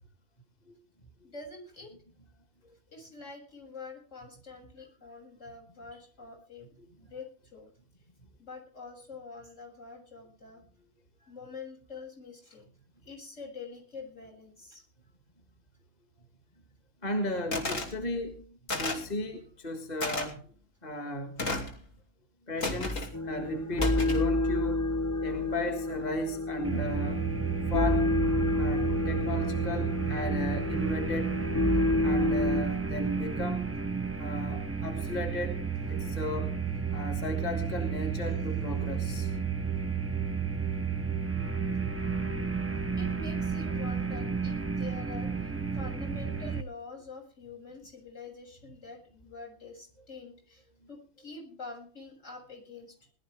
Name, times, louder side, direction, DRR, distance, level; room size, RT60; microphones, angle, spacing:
voice 1, 1.2-1.9 2.9-6.7 7.1-7.7 8.4-10.6 11.3-12.6 13.0-14.8 36.0-36.2 38.2-38.3 43.0-45.3 45.7-50.6 50.9-52.9, left 4 dB, 70° left, 0 dB, 7.5 m, -46 dB
voice 2, 6.8-7.1 17.0-20.4 20.8-21.5 22.5-24.8 25.2-27.3 27.7-28.1 28.6-31.4 32.0-33.6 34.2-36.5 36.9-39.3, left 1 dB, 35° left, 6 dB, 1.8 m, -36 dB
sound 1, 17.5-17.9 18.7-19.1 20.0-20.3 21.4-21.8 22.6-23.1 23.8-24.3, left 2 dB, 85° left, 3.2 m, -32 dB
sound 2, 23.1-32.6, left 2 dB, 15° left, 0.8 m, -29 dB
sound 3, 26.6-46.6, right 6 dB, 15° right, 0.6 m, -32 dB
20.5 x 12.5 x 3.5 m, 0.41 s
omnidirectional pair, 1.3 m